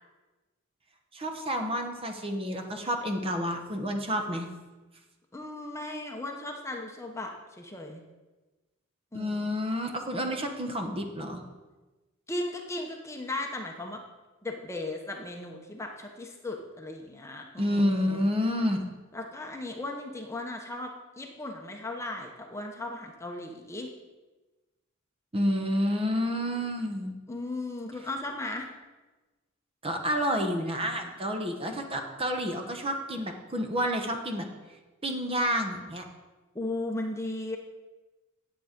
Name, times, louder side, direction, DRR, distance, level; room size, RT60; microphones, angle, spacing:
voice 1, 1.1-4.5 9.1-11.4 17.6-19.0 25.3-27.2 29.8-34.5 35.0-36.0, equal, 25° right, 4 dB, 1.1 m, -29 dB
voice 2, 5.3-8.0 9.1-9.5 12.3-14.0 14.4-18.3 19.1-23.9 27.3-28.7 36.5-37.6, left 2 dB, 15° left, 2 dB, 0.9 m, -36 dB
10.0 x 8.3 x 5.2 m, 1.2 s
head